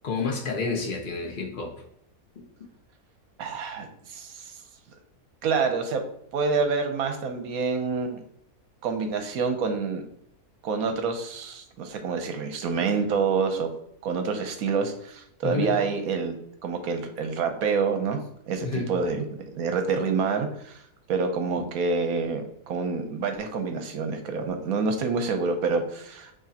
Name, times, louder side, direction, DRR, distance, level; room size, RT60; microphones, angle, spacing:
voice 1, 0.0-1.7 2.4-2.5 15.4-15.8 18.6-18.9, left 3 dB, 40° left, 2 dB, 0.8 m, -29 dB
voice 2, 3.4-4.5 5.4-6.0 6.3-8.2 8.8-10.0 10.6-13.7 14.0-16.4 16.6-18.2 18.5-19.2 19.5-20.8 21.1-26.3, right 5 dB, 70° right, 6 dB, 1.1 m, -27 dB
6.1 x 3.1 x 2.8 m, 0.73 s
omnidirectional pair, 1.6 m